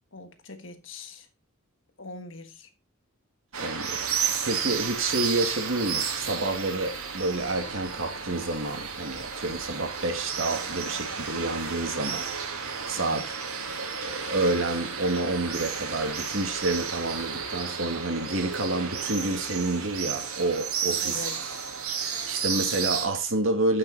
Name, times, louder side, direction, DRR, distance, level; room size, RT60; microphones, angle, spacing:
voice 1, 0.1-1.3 2.0-2.7 13.0-13.3 21.0-21.6, left 3 dB, 55° left, 1.4 m, -42 dB
sound 1, 3.5-23.1, right 6 dB, 80° right, 2.3 m, -32 dB
voice 2, 3.6-13.3 13.7-21.2 22.3-23.8, right 2 dB, 60° right, 2.2 m, -29 dB
12.0 x 5.9 x 4.2 m
head